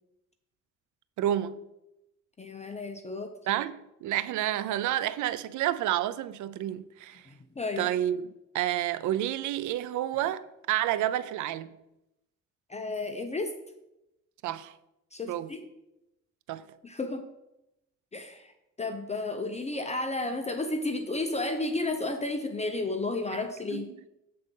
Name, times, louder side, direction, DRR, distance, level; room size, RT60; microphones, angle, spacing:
voice 1, 1.2-1.6 3.5-7.2 7.8-8.3 8.5-10.4 10.7-11.7 14.4-14.7 15.3-15.5 16.5-16.6 23.7-24.1, right 12 dB, 75° right, 0.5 m, -29 dB
voice 2, 2.4-3.3 7.3-7.9 12.7-13.5 15.1-15.6 16.8-17.3 18.1-18.5 18.8-23.9, left 2 dB, 20° left, 0.6 m, -32 dB
7.6 x 3.9 x 5.3 m
cardioid pair, 90°, 30 cm